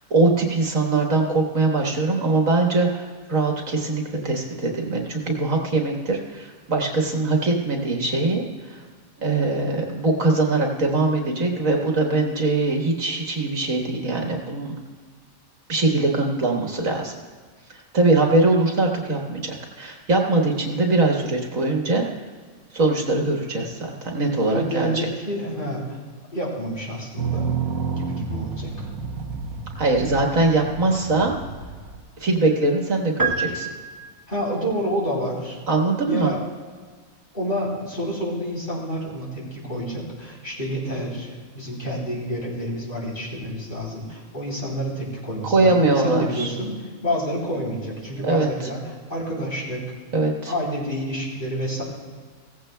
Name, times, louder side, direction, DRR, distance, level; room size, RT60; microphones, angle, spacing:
voice 1, 0.1-8.8 9.2-14.8 15.7-17.2 17.9-22.1 22.7-24.9 29.8-31.4 32.2-33.7 35.7-36.3 45.5-46.5 48.2-48.5 50.1-50.5, right 2 dB, 65° right, 1 dB, 1.9 m, -22 dB
voice 2, 24.5-26.0 26.3-27.5 27.9-28.9 34.3-35.6 36.1-36.4 37.3-46.7 47.0-49.8 50.5-51.8, equal, 35° left, -4 dB, 3.3 m, -28 dB
sound 1, 27.2-32.0, right 6 dB, 90° right, 1.4 m, -30 dB
sound 2, 33.2-34.5, right 4 dB, 20° right, 0.7 m, -27 dB
17.0 x 15.0 x 2.3 m, 1.5 s
omnidirectional pair, 1.5 m